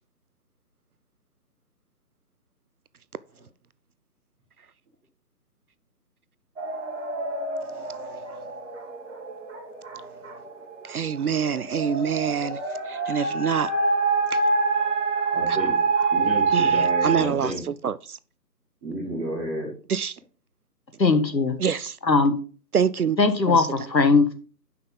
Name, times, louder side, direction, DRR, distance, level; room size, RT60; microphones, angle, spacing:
sound 1, 6.6-17.2, right 4 dB, 45° right, 1.9 m, -26 dB
voice 1, 10.8-12.6 12.8-13.7 14.3-14.4 15.5-15.6 16.5-18.2 19.9-20.2 21.6-22.0 22.7-23.2 23.5-23.7, right 7 dB, 60° right, 0.5 m, -26 dB
voice 2, 15.3-17.6 18.8-19.7, right 1 dB, 10° right, 1.5 m, -31 dB
voice 3, 21.0-21.6 22.1-22.4 23.2-24.3, left 4 dB, 85° left, 1.7 m, -19 dB
9.2 x 5.8 x 3.8 m
figure-of-eight pair, 150°, 50 cm